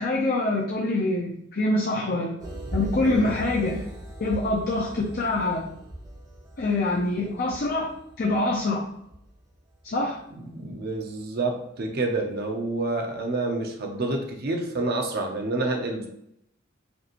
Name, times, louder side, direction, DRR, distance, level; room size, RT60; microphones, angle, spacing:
voice 1, 0.0-2.3 2.7-3.8 4.2-5.7 6.6-7.9 8.2-8.8 9.8-10.2, left 2 dB, 50° left, -2 dB, 0.6 m, -25 dB
sound 1, 2.4-10.3 10.7-10.8, right 1 dB, 20° right, 0.8 m, -39 dB
voice 2, 10.4-16.1, right 2 dB, 55° right, 3 dB, 0.7 m, -28 dB
5.1 x 3.0 x 2.5 m, 0.74 s
head